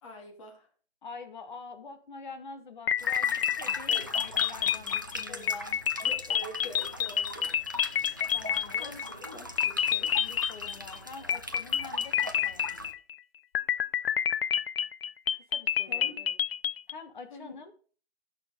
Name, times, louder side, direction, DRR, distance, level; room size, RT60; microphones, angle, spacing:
voice 1, 0.0-0.7 3.9-4.1 5.3-5.5 6.0-7.5 8.8-10.1 15.9-16.2 17.3-17.6, left 2 dB, 30° left, 3 dB, 2.2 m, -46 dB
voice 2, 1.0-5.8 8.3-9.0 9.9-12.8 15.3-16.3 16.9-17.7, left 4 dB, 45° left, 9 dB, 1.4 m, -46 dB
sound 1, 2.9-9.3 9.6-11.0 11.3-13.1 13.5-16.9, left 9 dB, 65° left, 0.4 m, -28 dB
sound 2, 3.0-12.9, equal, 20° right, 0.4 m, -41 dB
14.5 x 6.2 x 3.6 m, 0.41 s
hypercardioid pair, 155°, 32 cm